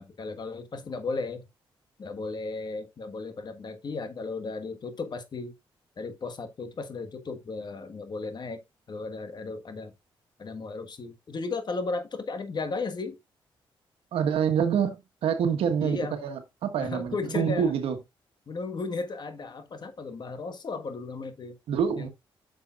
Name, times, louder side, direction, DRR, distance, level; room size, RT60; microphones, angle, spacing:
voice 1, 0.0-1.4 2.0-5.5 6.0-8.6 8.9-9.9 10.4-13.2 15.8-16.1 16.8-17.8 18.5-21.6 22.0-22.1, left 3 dB, 50° left, 1.5 m, -35 dB
voice 2, 14.1-15.0 15.2-18.0 21.7-22.1, right 7 dB, 85° right, 1.4 m, -26 dB
10.0 x 6.8 x 2.5 m
cardioid pair, 85°, 10 cm